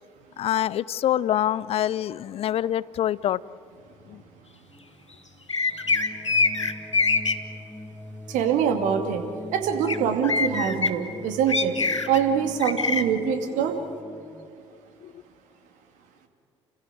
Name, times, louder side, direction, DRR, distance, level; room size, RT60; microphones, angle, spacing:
voice 1, 0.4-3.4 4.1-4.2 15.0-15.2, left 11 dB, 40° left, 22 dB, 0.5 m, -25 dB
sound 1, 4.7-14.5, left 1 dB, 10° left, 1.8 m, -42 dB
sound 2, 5.5-7.3 9.9-10.0 10.2-10.9 11.5-12.2 12.6-13.0, left 4 dB, 90° left, 0.8 m, -23 dB
voice 2, 8.3-9.2 9.5-11.8 12.1-13.8, right 7 dB, 55° right, 5 dB, 2.5 m, -24 dB
29.5 x 15.5 x 9.3 m, 2.6 s
figure-of-eight pair, 55°, 15 cm